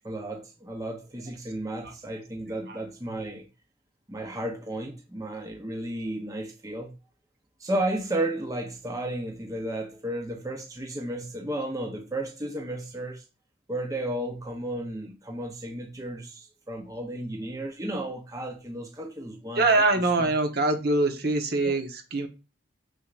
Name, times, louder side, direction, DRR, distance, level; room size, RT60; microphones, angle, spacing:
voice 1, 0.0-3.4 4.1-6.9 7.6-13.2 13.7-19.7 20.2-20.3 21.6-21.8, right 1 dB, 15° right, 0.8 m, -33 dB
voice 2, 19.5-22.3, right 2 dB, 50° right, 1.2 m, -24 dB
6.9 x 6.4 x 2.5 m
head